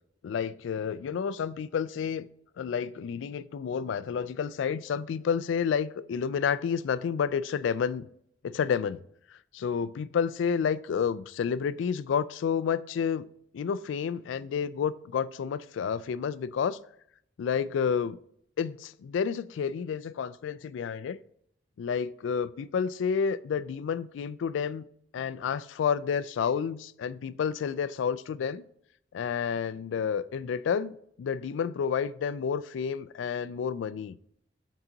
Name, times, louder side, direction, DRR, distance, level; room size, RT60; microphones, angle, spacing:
voice 1, 0.2-2.3 2.6-8.1 8.4-9.0 9.5-13.2 13.5-16.8 17.4-18.2 18.6-21.2 21.8-24.8 25.1-28.6 29.1-34.2, left 7 dB, 85° left, 0.3 m, -30 dB
7.1 x 3.9 x 3.8 m
head